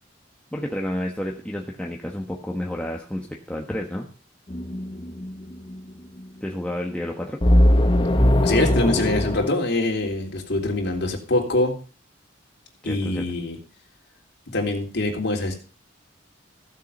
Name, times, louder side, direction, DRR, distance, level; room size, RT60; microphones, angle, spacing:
voice 1, 0.5-4.1 6.4-7.4 12.8-13.2, left 1 dB, 5° left, 0 dB, 1.2 m, -30 dB
sound 1, 4.5-5.3 7.4-9.5, left 1 dB, 25° left, 1.0 m, -19 dB
voice 2, 8.4-11.7 12.8-13.6 14.5-15.5, left 2 dB, 60° left, 0 dB, 3.4 m, -24 dB
15.5 x 7.4 x 5.5 m, 0.38 s
head